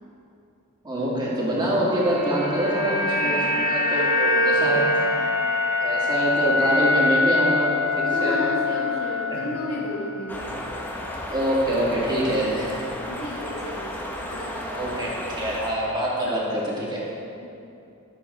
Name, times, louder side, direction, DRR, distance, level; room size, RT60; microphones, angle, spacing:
voice 1, 0.8-4.8 5.7-8.4 9.3-9.7 10.4-10.6 11.2-12.9 14.7-17.0, right 1 dB, 20° right, -6 dB, 2.3 m, -25 dB
sound 1, 1.7-10.0 10.3-10.5, left 2 dB, 40° right, 2.4 m, -24 dB
voice 2, 3.2-5.3 8.1-10.5 13.0-15.5 16.2-16.5 17.4-17.5, left 1 dB, 85° left, -10 dB, 2.7 m, -34 dB
sound 2, 10.3-15.7, left 1 dB, 10° left, 0.8 m, -33 dB
15.0 x 7.5 x 3.5 m, 2.7 s
head